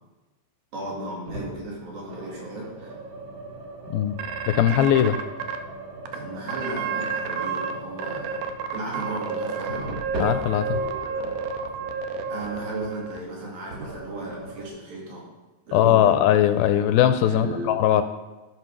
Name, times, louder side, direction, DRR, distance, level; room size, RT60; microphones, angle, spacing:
voice 1, 0.7-2.9 6.1-8.4 8.7-9.9 11.2-11.3 12.3-15.3 15.7-16.2 17.3-17.7, right 2 dB, 70° right, -3 dB, 4.4 m, -35 dB
sound 1, 1.3-1.7 2.1-12.8 13.7-14.7, right 2 dB, 50° right, 2.3 m, -39 dB
sound 2, 4.2-5.6 6.1-6.2 6.5-7.7 8.0-13.2, right 5 dB, 85° right, 2.6 m, -30 dB
voice 2, 4.5-5.2 10.2-10.8 15.7-18.0, left 11 dB, 80° left, 9 dB, 2.2 m, -20 dB
13.0 x 5.9 x 6.0 m, 1.2 s
omnidirectional pair, 4.4 m